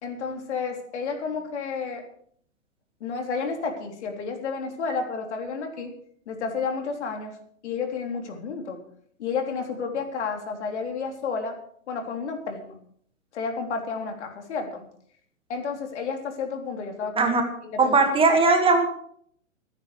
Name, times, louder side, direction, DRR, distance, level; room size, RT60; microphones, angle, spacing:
voice 1, 0.0-2.0 3.0-5.9 6.3-7.4 7.6-8.8 9.2-11.6 11.9-12.8 13.3-14.8 15.5-17.3 17.6-18.0 18.3-18.4, left 5 dB, 55° left, 4 dB, 3.7 m, -31 dB
voice 2, 17.8-18.9, right 3 dB, 15° right, 4 dB, 2.0 m, -19 dB
28.5 x 10.0 x 3.4 m, 0.63 s
figure-of-eight pair, 120°, 40 cm